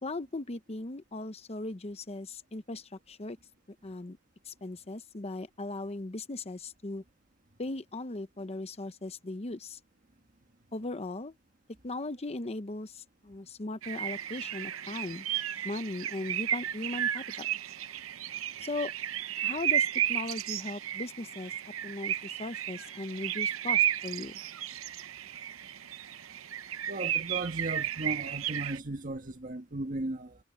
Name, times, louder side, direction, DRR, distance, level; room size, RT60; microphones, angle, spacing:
voice 1, 0.0-3.4 3.8-4.2 4.4-7.0 7.6-9.8 10.7-11.3 11.8-15.3 15.6-17.5 18.6-18.9 19.4-21.5 21.8-24.4, left 2 dB, 30° left, 0.8 m, -38 dB
sound 1, 13.8-28.8, right 11 dB, 75° right, 0.7 m, -33 dB
voice 2, 26.9-30.4, right 2 dB, 40° right, 1.6 m, -36 dB
head